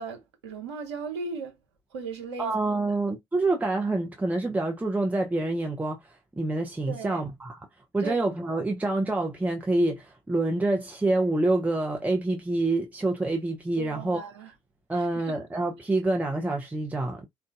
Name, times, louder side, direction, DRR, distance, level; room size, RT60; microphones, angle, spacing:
voice 1, 0.0-1.5 1.9-3.0 6.9-7.2 8.0-8.3 13.8-14.5 14.9-15.4, right 4 dB, 80° right, 0.7 m, -37 dB
voice 2, 2.4-7.6 7.9-14.3 14.9-17.3, right 2 dB, 10° right, 0.7 m, -27 dB
3.8 x 2.3 x 2.4 m
figure-of-eight pair, 40°, 14 cm